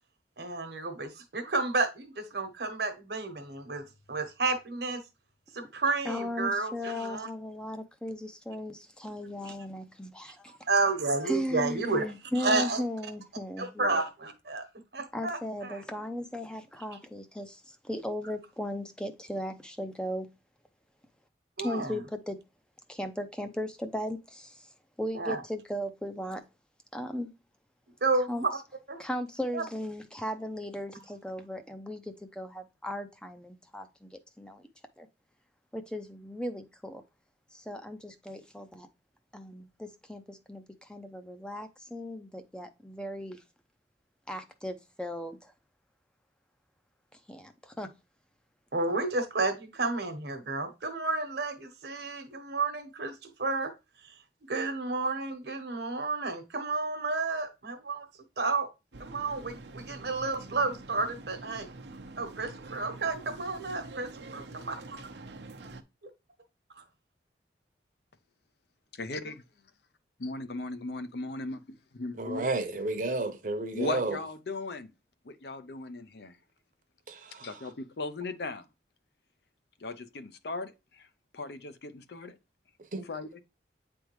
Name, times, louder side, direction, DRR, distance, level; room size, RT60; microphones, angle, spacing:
voice 1, 0.4-5.0 5.5-7.3 9.5-9.6 10.7-12.1 12.4-12.8 13.6-14.6 14.9-15.8 21.6-22.0 25.1-25.4 28.0-28.3 28.9-29.0 29.5-29.6 48.7-53.7 54.5-58.1 58.4-58.7 59.0-61.7 62.2-64.1 64.3-64.7, right 3 dB, 70° right, 1.1 m, -31 dB
voice 2, 6.0-10.5 11.2-14.0 15.1-20.3 21.6-22.4 22.9-24.7 25.0-26.4 26.9-27.3 28.3-28.4 29.0-34.7 35.0-35.1 35.7-37.0 37.5-38.9 39.3-43.4 44.3-45.5 47.3-47.9, left 1 dB, 5° left, 0.5 m, -37 dB
sound 1, 58.9-65.8, right 2 dB, 85° right, 0.8 m, -46 dB
voice 3, 68.9-69.4 70.2-71.6 71.9-72.5 73.7-74.9 75.2-76.4 77.4-78.7 79.8-81.1 81.3-82.4 83.0-83.4, left 2 dB, 70° left, 0.7 m, -37 dB
voice 4, 72.2-74.2 77.1-77.5 82.9-83.1, right 2 dB, 45° right, 0.8 m, -32 dB
8.9 x 3.5 x 3.1 m
head